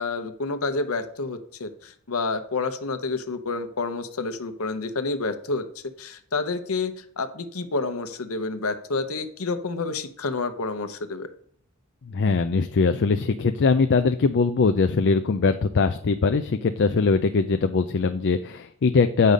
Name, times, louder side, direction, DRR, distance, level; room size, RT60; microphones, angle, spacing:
voice 1, 0.0-5.7 6.0-11.3, left 3 dB, 80° left, 10 dB, 0.9 m, -29 dB
voice 2, 12.1-19.3, left 4 dB, 55° left, 8 dB, 0.5 m, -21 dB
8.2 x 5.5 x 5.1 m, 0.63 s
head